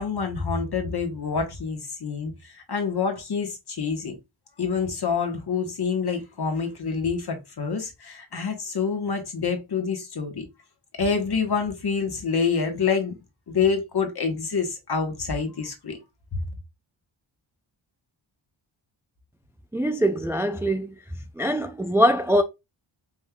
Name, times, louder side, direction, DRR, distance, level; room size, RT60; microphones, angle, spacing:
voice 1, 0.0-4.2 4.6-10.4 11.0-13.2 13.5-16.0 16.3-16.4, left 5 dB, 50° left, 1.4 m, -27 dB
voice 2, 19.7-21.0 21.4-22.4, equal, 5° right, 0.4 m, -22 dB
5.2 x 3.5 x 2.3 m
wide cardioid pair, 85°, 49 cm